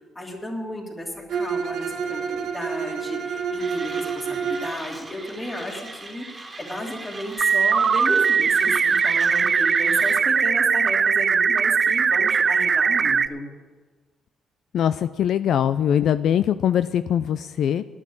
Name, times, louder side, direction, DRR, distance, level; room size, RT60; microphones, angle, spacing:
voice 1, 0.0-13.5, left 1 dB, 20° left, -1 dB, 3.0 m, -33 dB
Bowed string instrument, 1.3-4.8, right 6 dB, 75° right, 1.3 m, -28 dB
Mechanisms, 3.6-10.2, right 2 dB, 25° right, 1.9 m, -40 dB
sound 1, 7.4-13.3, right 6 dB, 45° right, 0.4 m, -20 dB
voice 2, 14.7-17.8, left 9 dB, 70° left, 13 dB, 0.3 m, -22 dB
9.7 x 8.7 x 8.7 m, 1.3 s
cardioid pair, 90°, 0 cm